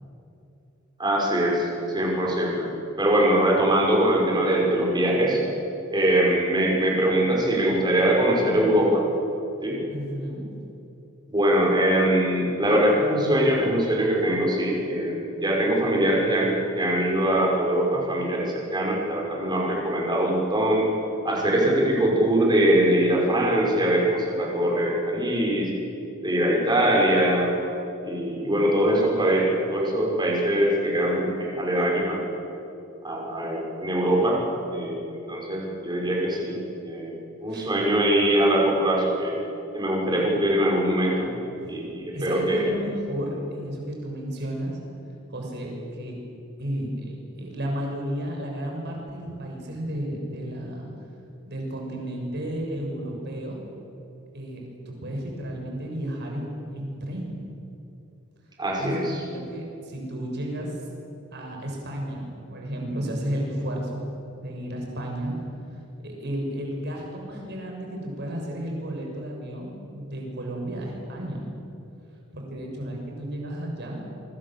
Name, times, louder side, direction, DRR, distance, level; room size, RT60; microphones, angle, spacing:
voice 1, 1.0-2.7 3.0-5.4 5.9-9.0 9.6-9.8 11.3-20.9 21.2-25.7 26.2-27.5 28.0-32.2 33.0-34.4 34.7-36.6 36.8-37.1 37.4-39.3 39.7-41.3 41.7-42.6 58.6-59.2, right 1 dB, 20° right, -2 dB, 6.2 m, -22 dB
voice 2, 9.9-10.5 37.5-37.7 41.6-41.8 42.1-44.8 45.3-46.1 46.6-50.9 51.5-53.6 54.3-57.3 58.8-60.8 61.3-64.1 64.3-65.3 66.0-71.4 72.3-74.1, equal, 55° right, 0 dB, 6.8 m, -33 dB
25.5 x 25.0 x 7.7 m, 2.8 s
head